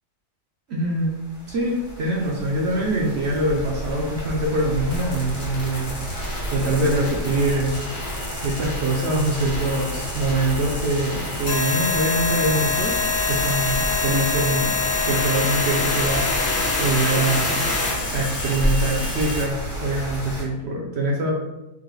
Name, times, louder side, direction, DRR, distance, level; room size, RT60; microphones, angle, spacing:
voice 1, 0.7-1.1 1.5-7.7 8.3-14.7 15.0-17.7 18.1-21.3, right 2 dB, 60° right, -1 dB, 0.7 m, -24 dB
sound 1, 0.9-20.4, equal, 15° left, 0.7 m, -31 dB
sound 2, 4.9-19.4, left 3 dB, 40° left, 0.9 m, -26 dB
sound 3, 12.4-19.0, left 4 dB, 70° left, 1.0 m, -41 dB
3.8 x 2.9 x 3.1 m, 1.0 s
omnidirectional pair, 1.6 m